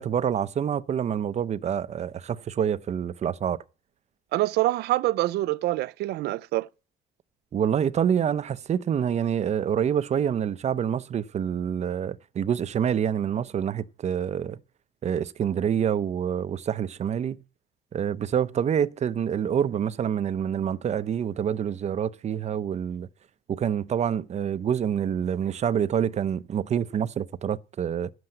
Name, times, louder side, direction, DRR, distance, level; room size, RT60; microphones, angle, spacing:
voice 1, 0.0-3.6 7.5-14.6 15.0-17.4 17.9-23.1 23.5-28.1, right 8 dB, 40° right, 0.7 m, -27 dB
voice 2, 4.3-6.7, right 17 dB, 75° right, 0.5 m, -25 dB
11.5 x 7.8 x 7.9 m
cardioid pair, 110°, 17 cm